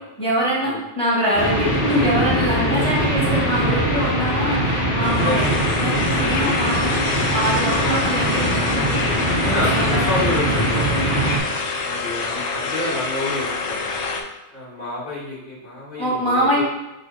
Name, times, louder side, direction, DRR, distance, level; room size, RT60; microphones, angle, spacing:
voice 1, 0.2-5.5 5.8-9.1 9.4-10.7 16.0-16.6, equal, 5° left, -6 dB, 1.2 m, -24 dB
sound 1, 1.3-11.4, right 1 dB, 60° left, 1.2 m, -22 dB
voice 2, 2.8-3.3 5.2-5.6 6.4-6.5 9.4-11.0 11.8-14.0 14.5-16.6, left 1 dB, 45° left, -7 dB, 1.6 m, -29 dB
sound 2, 5.0-14.2, left 4 dB, 80° left, 0.9 m, -27 dB
4.2 x 2.5 x 4.8 m, 1.0 s
omnidirectional pair, 1.2 m